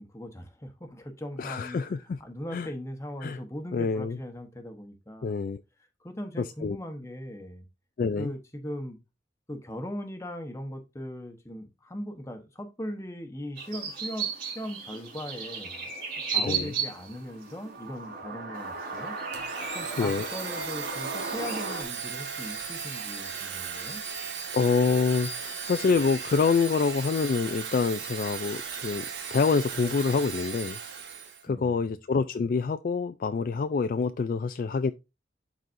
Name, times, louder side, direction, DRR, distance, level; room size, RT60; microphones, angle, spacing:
voice 1, 0.0-1.8 2.2-5.4 6.0-7.7 8.2-9.0 9.5-15.9 16.3-19.2 19.7-24.0 31.5-31.9, equal, 15° left, 1.0 m, -39 dB
voice 2, 1.4-2.2 2.5-2.7 3.2-3.4 3.7-4.2 5.2-5.6 6.6-6.8 8.0-8.3 16.4-16.7 20.0-20.3 24.5-29.0 29.3-30.8 31.4-34.9, left 5 dB, 50° left, 0.3 m, -26 dB
sound 1, 13.6-21.8, right 5 dB, 55° right, 4.2 m, -35 dB
Domestic sounds home sounds, 19.3-31.4, right 6 dB, 75° right, 1.3 m, -37 dB
12.0 x 4.1 x 2.6 m
head